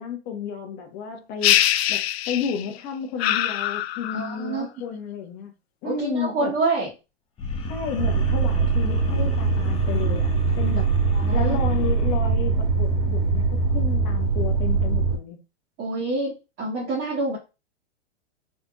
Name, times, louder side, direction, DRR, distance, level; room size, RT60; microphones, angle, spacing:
voice 1, 0.0-5.5 5.8-6.5 7.7-10.9 11.3-15.4, left 6 dB, 35° left, 1.3 m, -32 dB
sound 1, 1.4-2.8 3.2-4.5, left 12 dB, 65° left, 0.5 m, -23 dB
voice 2, 4.1-4.7 5.8-6.9 11.1-11.6 15.8-17.4, right 3 dB, 30° right, 1.8 m, -27 dB
sound 2, 7.4-13.7, left 2 dB, 15° left, 0.8 m, -35 dB
sound 3, 8.0-15.2, right 5 dB, 60° right, 2.4 m, -22 dB
4.3 x 3.4 x 2.6 m
hypercardioid pair, 140°, 34 cm